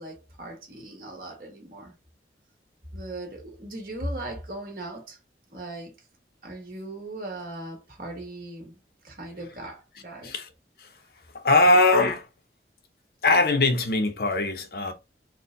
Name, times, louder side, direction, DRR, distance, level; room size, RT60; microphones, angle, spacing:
voice 1, 0.0-1.9 2.9-5.2 5.5-5.9 6.4-8.8 9.0-10.3, right 1 dB, 50° right, 1.5 m, -38 dB
voice 2, 11.3-12.3 13.2-14.9, left 2 dB, 55° left, 0.7 m, -21 dB
4.4 x 2.2 x 3.8 m
head